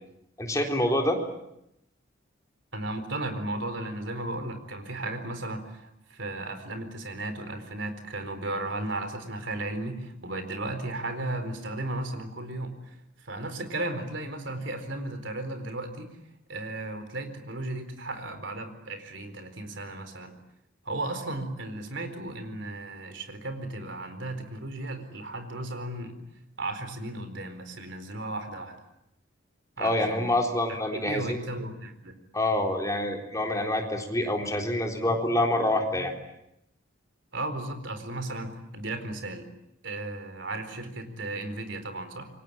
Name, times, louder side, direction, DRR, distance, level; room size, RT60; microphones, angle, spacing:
voice 1, 0.4-1.2 29.8-31.4 32.3-36.1, left 1 dB, 15° left, 2 dB, 3.8 m, -26 dB
voice 2, 2.7-16.2 16.5-20.3 20.8-26.2 26.6-28.7 29.8-30.3 30.9-32.2 37.3-39.5 39.8-42.3, right 2 dB, 60° right, 8 dB, 4.3 m, -35 dB
28.0 x 24.0 x 8.9 m, 0.82 s
head